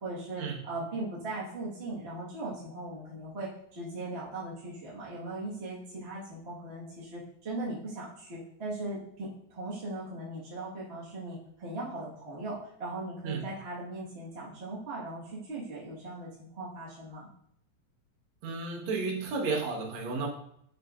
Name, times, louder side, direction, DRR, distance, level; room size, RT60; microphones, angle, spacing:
voice 1, 0.0-17.3, right 2 dB, 35° right, -7 dB, 1.1 m, -39 dB
voice 2, 18.4-20.3, right 4 dB, 70° right, -1 dB, 2.4 m, -32 dB
6.4 x 6.1 x 2.4 m, 0.69 s
omnidirectional pair, 3.4 m